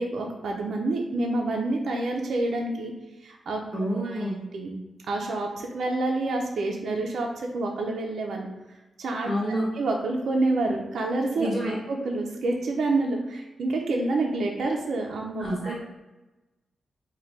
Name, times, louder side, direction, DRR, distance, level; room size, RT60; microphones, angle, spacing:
voice 1, 0.0-2.9 3.2-3.6 4.0-4.2 4.5-4.7 5.1-8.5 9.0-9.3 9.7-11.5 11.9-15.5, right 2 dB, 65° right, 1 dB, 0.4 m, -27 dB
voice 2, 3.7-4.4 9.2-9.6 11.4-11.7 15.4-15.7, right 1 dB, 10° right, -7 dB, 1.0 m, -28 dB
3.9 x 2.2 x 3.1 m, 1.1 s
wide cardioid pair, 170°, 0 cm